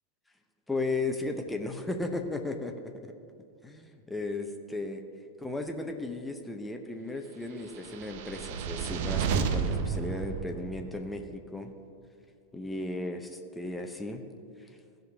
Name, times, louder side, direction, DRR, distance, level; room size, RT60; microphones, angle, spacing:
voice 1, 0.7-3.1 3.6-5.0 5.4-11.7 12.5-14.2, left 2 dB, 5° left, 4 dB, 0.8 m, -35 dB
sound 1, 7.8-11.2, right 6 dB, 50° right, 0.7 m, -31 dB
15.5 x 5.3 x 5.9 m, 2.4 s
figure-of-eight pair, 90°, 0 cm